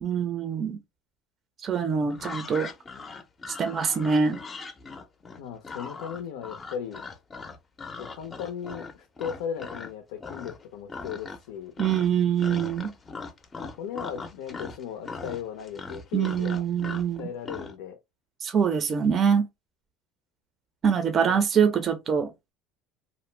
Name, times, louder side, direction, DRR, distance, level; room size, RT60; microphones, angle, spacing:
voice 1, 0.0-0.8 1.6-2.7 3.5-4.4 11.8-12.9 16.1-17.3 18.4-19.5 20.8-22.3, right 7 dB, 35° right, 0.5 m, -24 dB
sound 1, 2.1-9.9 10.2-10.6 10.9-11.5 11.8-17.7, left 4 dB, 25° left, 0.5 m, -40 dB
voice 2, 5.4-7.0 8.0-11.7 13.6-16.6 17.2-18.0 21.3-21.4, left 8 dB, 85° left, 0.5 m, -37 dB
2.6 x 2.0 x 3.1 m
supercardioid pair, 110°, 0 cm